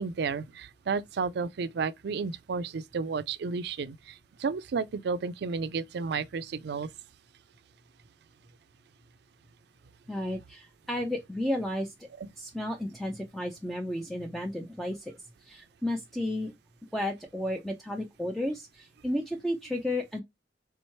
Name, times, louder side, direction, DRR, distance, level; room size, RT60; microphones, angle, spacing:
voice 1, 0.0-6.9 12.2-12.3, right 5 dB, 65° right, 0.4 m, -32 dB
voice 2, 10.1-11.9 12.4-15.1 15.4-16.5 16.9-20.2, left 1 dB, ahead, 0.4 m, -33 dB
3.5 x 3.1 x 4.3 m
head